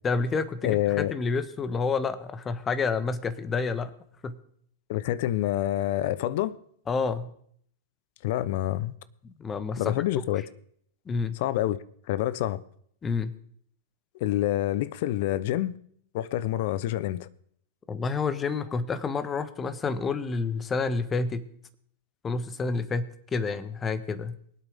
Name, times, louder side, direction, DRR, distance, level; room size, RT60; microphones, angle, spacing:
voice 1, 0.0-3.9 4.2-4.4 6.9-7.3 9.2-10.0 11.1-11.4 13.0-13.3 17.9-21.4 22.2-24.3, left 4 dB, 20° left, 1.2 m, -29 dB
voice 2, 0.6-1.1 4.9-6.6 8.2-8.9 9.8-10.4 11.4-12.6 14.2-15.8 16.1-17.3, left 14 dB, 60° left, 0.7 m, -27 dB
23.0 x 8.4 x 3.5 m
hypercardioid pair, 110°, 0 cm